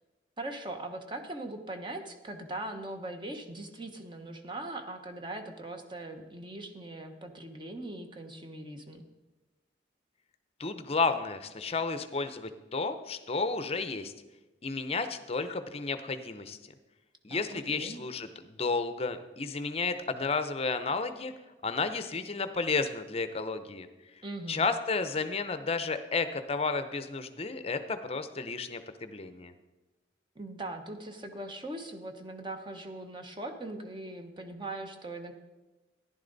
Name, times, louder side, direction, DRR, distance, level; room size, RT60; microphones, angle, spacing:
voice 1, 0.4-9.0 17.3-18.0 24.2-24.6 30.3-35.3, right 2 dB, 25° right, 5 dB, 1.0 m, -40 dB
voice 2, 10.6-14.1 14.6-16.6 17.2-21.3 21.6-23.9 24.5-29.5, left 4 dB, 30° left, 10 dB, 0.6 m, -32 dB
14.0 x 11.0 x 4.0 m, 1.1 s
head